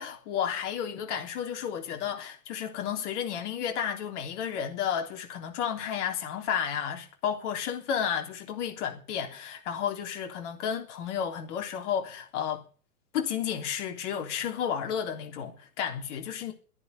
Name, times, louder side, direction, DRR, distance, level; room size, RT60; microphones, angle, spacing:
voice 1, 0.0-12.6 13.1-16.5, left 8 dB, 45° left, 3.6 m, -32 dB
12.5 x 10.5 x 8.2 m
hypercardioid pair, 125°, 47 cm